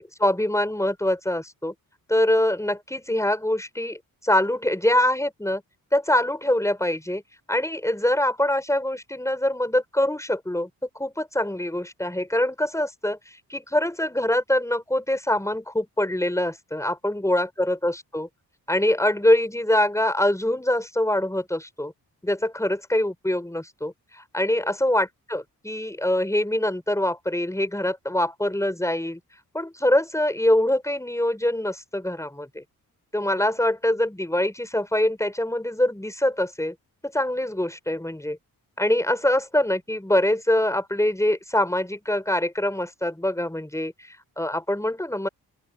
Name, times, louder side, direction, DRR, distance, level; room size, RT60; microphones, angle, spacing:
voice 1, 0.0-1.7 2.1-5.6 5.9-7.2 7.5-13.2 13.5-18.3 18.7-21.9 22.2-29.2 29.5-32.6 33.1-36.7 37.0-38.4 38.8-45.3, left 1 dB, 10° left, 6.2 m, -24 dB
open air
cardioid pair, 60°, 37 cm